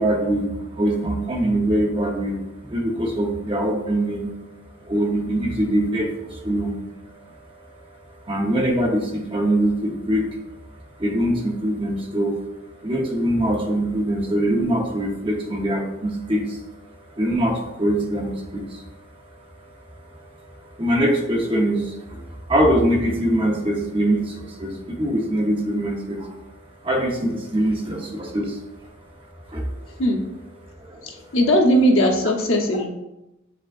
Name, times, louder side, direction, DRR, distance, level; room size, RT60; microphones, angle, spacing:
voice 1, 0.0-4.3 4.8-6.8 7.0-10.6 11.0-12.4 12.7-26.4 26.8-28.9 29.2-30.0 30.7-31.2, right 1 dB, 25° right, 0 dB, 0.9 m, -24 dB
voice 2, 29.9-30.2 31.0-32.9, equal, 80° left, 1 dB, 1.0 m, -19 dB
7.7 x 5.0 x 2.5 m, 0.93 s
head